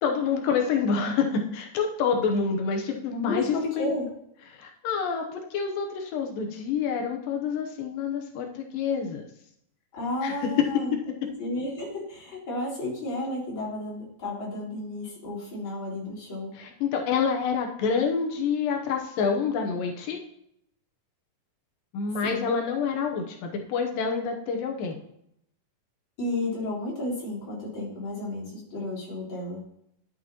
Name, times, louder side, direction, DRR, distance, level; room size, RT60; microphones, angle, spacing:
voice 1, 0.0-3.9 4.5-9.2 10.2-10.7 16.6-20.2 21.9-25.0, left 6 dB, 90° left, 2 dB, 2.6 m, -27 dB
voice 2, 3.2-4.1 9.9-10.9 11.2-16.5 22.2-22.5 26.2-29.6, left 1 dB, 35° left, -7 dB, 3.9 m, -32 dB
11.0 x 7.9 x 2.9 m, 0.75 s
omnidirectional pair, 3.8 m